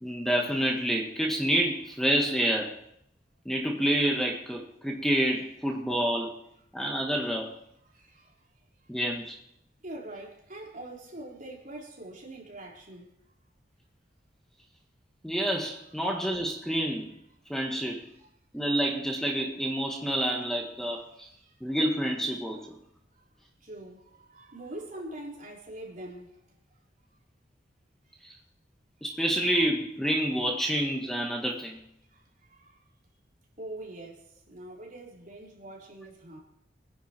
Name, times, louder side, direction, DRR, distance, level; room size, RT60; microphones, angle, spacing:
voice 1, 0.0-2.7 3.5-6.3 6.7-7.5 8.9-9.4 15.2-17.1 17.5-18.1 18.5-21.3 21.6-22.7 28.2-28.4 29.0-31.8, right 1 dB, 5° left, 1.7 m, -28 dB
voice 2, 7.9-8.3 9.8-13.1 21.1-21.5 23.2-23.3 23.6-26.4 32.1-32.8 33.6-36.4, right 1 dB, 45° right, 4.1 m, -44 dB
22.0 x 10.5 x 4.6 m
head